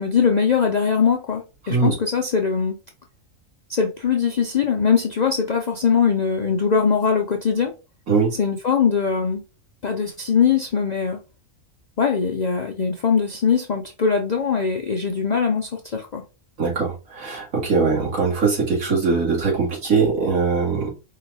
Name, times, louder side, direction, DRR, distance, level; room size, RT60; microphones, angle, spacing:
voice 1, 0.0-2.8 3.7-7.7 8.3-9.4 9.8-11.2 12.0-16.2, left 6 dB, 70° left, 0.4 m, -21 dB
voice 2, 16.6-20.9, right 4 dB, 75° right, 2.2 m, -21 dB
4.8 x 2.3 x 4.0 m
omnidirectional pair, 1.4 m